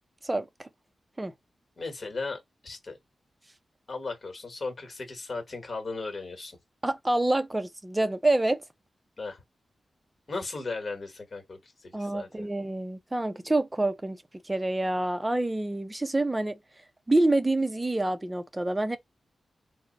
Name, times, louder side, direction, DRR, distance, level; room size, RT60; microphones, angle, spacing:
voice 1, 0.2-0.7 1.2-1.3 6.8-8.6 11.9-14.2 14.4-16.6 17.1-19.0, right 2 dB, 15° right, 0.5 m, -27 dB
voice 2, 1.8-3.0 3.9-6.6 9.2-9.4 10.3-12.5, left 3 dB, 50° left, 1.3 m, -36 dB
3.7 x 2.0 x 3.9 m
wide cardioid pair, 105°, 0 cm